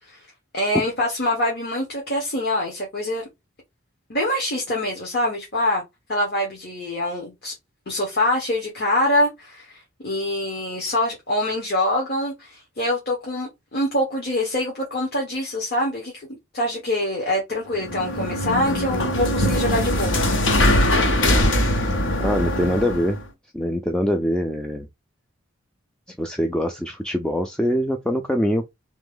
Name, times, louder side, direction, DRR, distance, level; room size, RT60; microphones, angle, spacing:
voice 1, 0.5-3.2 4.1-5.8 6.1-7.5 7.9-20.3, left 1 dB, 50° left, 1.2 m, -25 dB
sound 1, 17.7-23.2, left 1 dB, 65° left, 1.0 m, -21 dB
voice 2, 22.2-23.2 23.5-24.9 26.2-28.7, equal, 5° left, 0.3 m, -23 dB
3.4 x 3.1 x 3.7 m
head